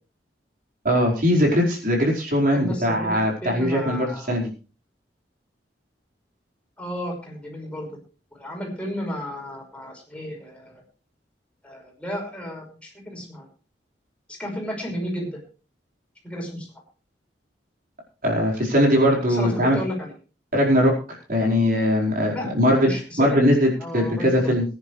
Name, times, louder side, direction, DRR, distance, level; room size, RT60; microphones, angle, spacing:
voice 1, 0.8-4.5 18.2-19.8 20.5-20.9 21.3-24.6, equal, 55° right, -1 dB, 4.8 m, -20 dB
voice 2, 2.5-4.4 6.8-7.9 8.3-10.7 11.6-13.4 14.4-15.3 16.2-16.7 19.3-20.1 22.3-22.5 22.8-23.5 23.8-24.5, equal, 5° left, -1 dB, 5.6 m, -33 dB
21.0 x 10.5 x 3.3 m, 0.35 s
head